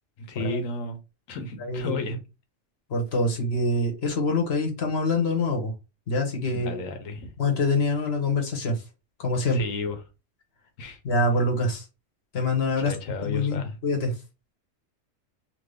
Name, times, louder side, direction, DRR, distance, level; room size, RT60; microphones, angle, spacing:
voice 1, 0.2-1.0 1.3-2.2 6.5-7.3 9.5-10.0 10.8-11.0 12.8-13.8, left 3 dB, 80° left, 1.2 m, -33 dB
voice 2, 1.6-2.0 2.9-5.7 6.1-6.8 7.4-8.8 9.2-9.6 11.0-11.8 12.3-12.9 13.2-14.1, left 2 dB, 55° left, 1.1 m, -25 dB
2.9 x 2.6 x 3.3 m
omnidirectional pair, 1.4 m